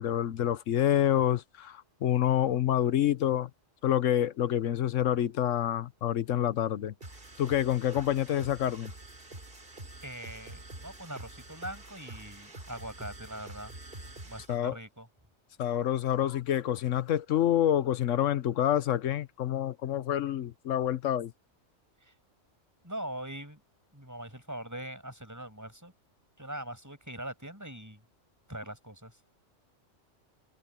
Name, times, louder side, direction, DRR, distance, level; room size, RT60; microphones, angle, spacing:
voice 1, 0.0-3.5 3.8-6.9 7.4-8.9 14.5-14.8 15.6-21.3, left 11 dB, 90° left, 1.2 m, -27 dB
sound 1, 7.0-14.6, right 2 dB, 50° right, 3.5 m, -47 dB
voice 2, 10.0-13.7 14.2-15.1 22.0-22.1 22.8-23.6 23.9-25.9 26.4-28.0 28.5-29.2, right 1 dB, 15° right, 6.3 m, -42 dB
omnidirectional pair, 1.3 m